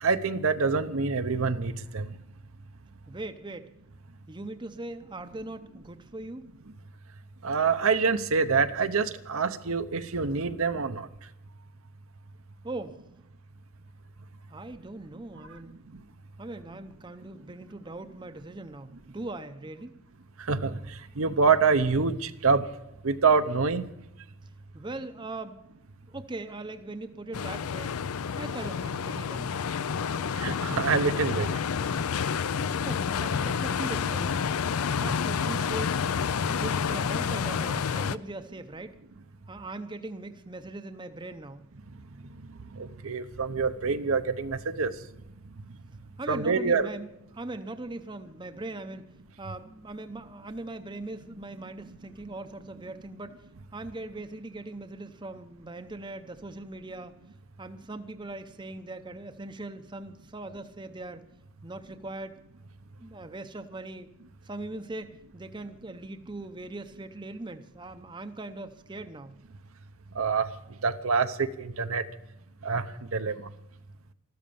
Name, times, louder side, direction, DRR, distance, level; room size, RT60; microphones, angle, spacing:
voice 1, 0.0-2.1 7.4-11.1 20.5-20.8 21.2-22.6 23.0-23.8 30.4-31.5 42.8-44.9 46.3-46.9 70.2-70.5 70.8-72.0 72.6-72.8 73.1-73.3, right 5 dB, 70° right, 10 dB, 0.8 m, -26 dB
voice 2, 3.1-3.7 4.3-6.5 12.6-13.0 14.5-15.8 16.4-19.9 24.7-25.6 26.1-27.9 28.4-29.5 32.8-34.4 35.0-36.0 36.5-39.0 39.5-41.7 46.2-49.0 49.4-53.5 53.7-57.1 57.6-61.2 61.6-62.4 63.0-64.1 64.4-69.4, right 2 dB, 20° right, 9 dB, 0.7 m, -40 dB
sound 1, 27.3-38.2, left 6 dB, 75° left, 0.5 m, -29 dB
14.0 x 12.5 x 7.0 m, 0.86 s
head